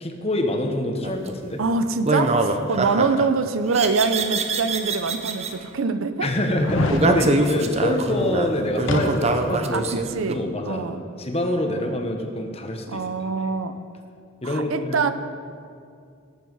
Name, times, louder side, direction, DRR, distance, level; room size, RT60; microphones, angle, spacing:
voice 1, 0.0-1.6 2.6-2.7 6.2-10.8 11.2-13.0 14.4-15.0, left 1 dB, 30° left, 4 dB, 1.1 m, -26 dB
sound 1, 1.0-1.3 2.1-3.3 3.7-5.5 6.9-10.4, right 2 dB, 30° right, 0.6 m, -24 dB
voice 2, 1.6-6.3 7.1-7.2 9.7-11.0 12.9-13.8 14.4-15.1, right 4 dB, 80° right, 11 dB, 0.6 m, -24 dB
sound 2, 4.5-4.6 5.3-5.4 6.5-7.1 8.9-9.5 9.9-10.0, left 2 dB, 70° left, 1.0 m, -26 dB
18.5 x 7.3 x 4.8 m, 2.3 s
head